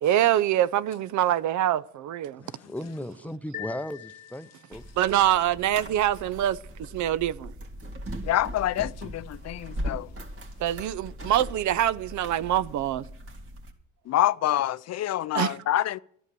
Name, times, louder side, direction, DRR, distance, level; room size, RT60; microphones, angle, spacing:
voice 1, 0.0-2.4 5.0-7.5 10.6-13.0 15.3-15.6, right 12 dB, 75° right, 0.6 m, -25 dB
voice 2, 2.3-4.8, left 1 dB, 5° left, 0.6 m, -37 dB
sound 1, 3.5-5.0, left 9 dB, 30° left, 1.2 m, -42 dB
sound 2, 4.7-13.7, equal, 50° right, 2.2 m, -39 dB
voice 3, 8.2-10.1 14.1-16.0, left 13 dB, 60° left, 0.5 m, -26 dB
13.0 x 11.0 x 6.8 m
cardioid pair, 90°, 30 cm